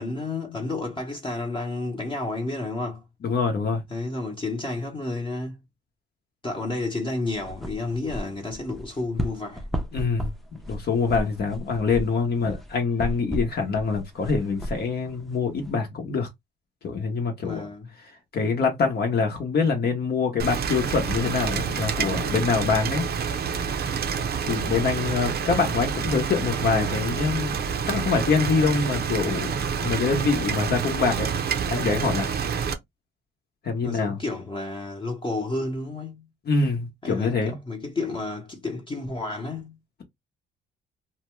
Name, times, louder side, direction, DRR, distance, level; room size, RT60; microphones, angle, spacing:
voice 1, 0.0-3.0 3.9-5.6 6.4-9.7 17.4-17.9 33.8-36.3 37.0-39.8, left 2 dB, 25° left, 0.9 m, -31 dB
voice 2, 3.2-3.8 9.9-10.3 10.7-16.3 16.8-17.6 18.3-23.1 23.5-23.6 24.5-31.3 31.7-32.3 33.6-34.2 36.5-37.6, left 4 dB, 55° left, 0.9 m, -25 dB
sound 1, 7.3-15.8, equal, ahead, 0.6 m, -35 dB
Rain, 20.4-32.7, right 6 dB, 55° right, 0.6 m, -28 dB
2.7 x 2.2 x 3.1 m
cardioid pair, 90°, 20 cm